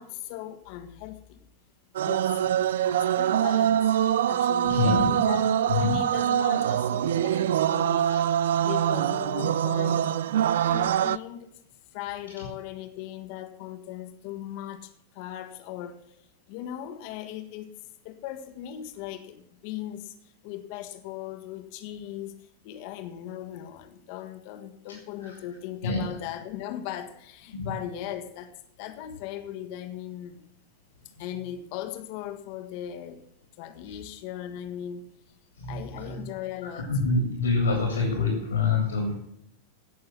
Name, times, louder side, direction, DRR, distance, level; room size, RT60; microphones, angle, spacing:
voice 1, 0.0-1.4 2.0-2.4 2.8-4.0 4.3-10.1 10.6-11.5 11.9-16.0 16.5-17.7 18.0-20.1 20.4-22.4 22.6-30.4 31.2-33.2 33.6-35.1 35.6-37.0, left 11 dB, 45° left, 8 dB, 1.6 m, -38 dB
sound 1, 1.9-11.2, right 10 dB, 60° right, 0.4 m, -24 dB
voice 2, 4.6-5.1 5.7-5.9 8.0-8.2 8.6-8.7 25.2-25.4 25.8-26.0 27.5-27.7 31.1-31.2 35.6-36.2 36.7-39.1, left 4 dB, 70° left, 2 dB, 3.0 m, -26 dB
16.5 x 6.6 x 6.0 m, 0.75 s
figure-of-eight pair, 90°, 0 cm